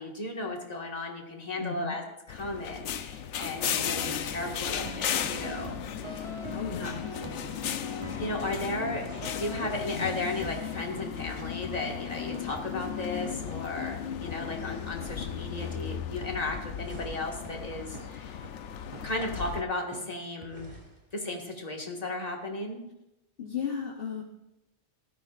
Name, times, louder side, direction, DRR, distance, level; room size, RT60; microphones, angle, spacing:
voice 1, 0.0-2.0 2.3-6.2 6.8-6.9 8.1-18.4 19.0-20.7 21.1-22.8, left 2 dB, 35° left, 1 dB, 1.9 m, -35 dB
voice 2, 1.6-2.0 6.5-7.1 23.4-24.2, left 6 dB, 55° left, 1 dB, 1.2 m, -35 dB
sound 1, 2.3-19.6, left 9 dB, 90° left, 1.0 m, -35 dB
sound 2, 3.6-16.6 16.9-17.1 17.4-17.5 17.9-18.1 18.4-18.5 18.9-19.1 19.4-19.5 19.9-20.1 20.4-20.5, right 2 dB, 30° right, 0.8 m, -43 dB
sound 3, 5.2-6.1 8.8-10.2 13.1-14.2 16.7-18.0 20.3-21.3, right 1 dB, 50° right, 2.5 m, -51 dB
16.5 x 13.0 x 2.5 m, 0.91 s
omnidirectional pair, 1.2 m